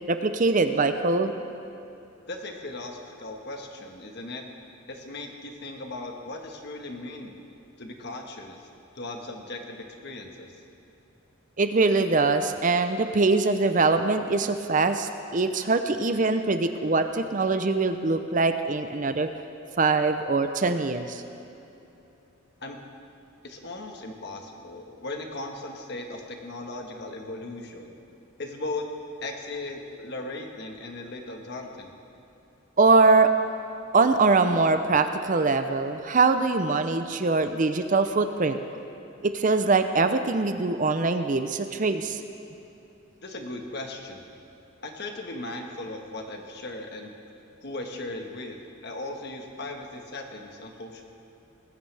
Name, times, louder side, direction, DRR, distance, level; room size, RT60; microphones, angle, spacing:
voice 1, 0.1-1.3 11.6-19.3 19.8-21.2 32.8-33.3 33.9-38.6 39.2-42.2, right 3 dB, 40° right, 8 dB, 0.6 m, -23 dB
voice 2, 2.3-4.4 4.9-7.3 7.8-8.7 8.9-10.5 22.6-22.8 23.4-28.0 28.4-28.9 29.2-31.9 43.2-44.3 44.8-47.1 47.6-51.0, left 2 dB, 55° left, 3 dB, 1.4 m, -37 dB
19.5 x 15.5 x 3.4 m, 2.9 s
head